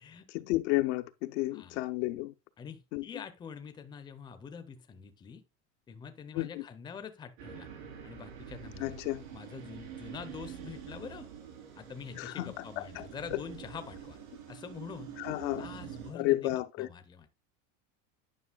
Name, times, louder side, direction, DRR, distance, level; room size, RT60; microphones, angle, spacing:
voice 1, 0.3-2.3 2.9-3.2 6.3-6.7 8.8-9.2 12.1-13.4 15.2-15.7 16.1-16.9, left 18 dB, 65° left, 0.6 m, -32 dB
voice 2, 1.5-1.8 2.6-5.4 5.9-7.7 8.0-9.0 9.3-11.3 11.7-14.2 14.5-15.1 15.6-16.5 16.8-17.3, left 6 dB, 10° left, 0.5 m, -45 dB
sound 1, 7.4-16.1, right 8 dB, 75° right, 3.2 m, -46 dB
9.8 x 5.5 x 2.3 m
supercardioid pair, 130°, 40 cm